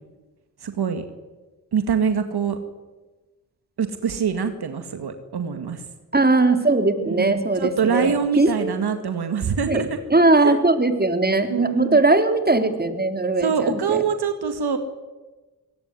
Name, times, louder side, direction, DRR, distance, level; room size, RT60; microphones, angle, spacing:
voice 1, 0.6-1.1 1.7-2.6 3.8-5.8 7.0-9.9 10.4-10.6 11.5-12.0 13.4-14.8, right 6 dB, 70° right, 8 dB, 2.0 m, -24 dB
voice 2, 6.1-8.8 9.7-9.8 10.1-14.0, right 2 dB, 25° right, 7 dB, 3.7 m, -19 dB
23.5 x 18.0 x 9.7 m, 1.2 s
supercardioid pair, 45°, 40 cm